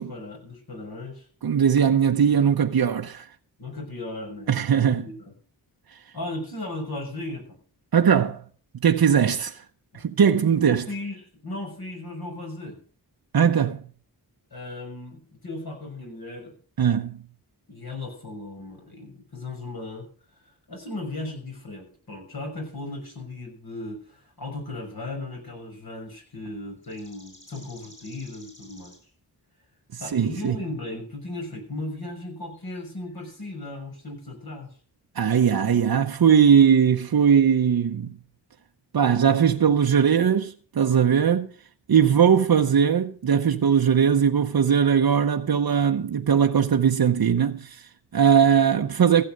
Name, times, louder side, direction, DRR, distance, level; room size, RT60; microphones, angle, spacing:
voice 1, 0.0-1.3 3.6-4.9 6.1-7.6 9.9-10.0 10.7-12.8 14.5-16.5 17.7-20.1 20.4-29.0 30.0-34.7 42.5-42.6, left 2 dB, 60° left, 6.1 m, -36 dB
voice 2, 1.4-3.3 4.5-5.1 5.9-6.0 7.9-8.4 8.8-9.6 9.9-10.8 13.3-13.9 16.8-17.2 29.9-30.6 35.1-38.2 38.9-41.5 41.9-49.2, right 7 dB, 60° right, 0.8 m, -20 dB
sound 1, 25.5-25.6 26.2-26.3 26.8-29.1 30.2-30.4 32.5-33.6 34.0-34.1 34.7-34.8, left 1 dB, 25° left, 7.1 m, -53 dB
15.5 x 7.7 x 6.5 m
cardioid pair, 60°, 42 cm